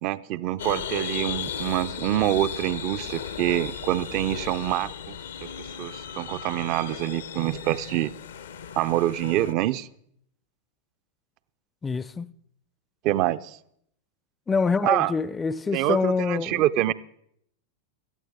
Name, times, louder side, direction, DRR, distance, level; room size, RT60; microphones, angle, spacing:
voice 1, 0.0-5.1 5.4-5.5 5.8-8.1 8.8-9.9 13.0-13.6 14.8-15.1 15.7-16.9, right 14 dB, 40° right, 0.4 m, -26 dB
sound 1, 0.6-9.5, left 8 dB, 65° left, 0.6 m, -36 dB
voice 2, 11.8-12.3 14.5-16.6, left 4 dB, 15° left, 0.4 m, -25 dB
17.5 x 13.0 x 3.5 m
figure-of-eight pair, 90°, 0 cm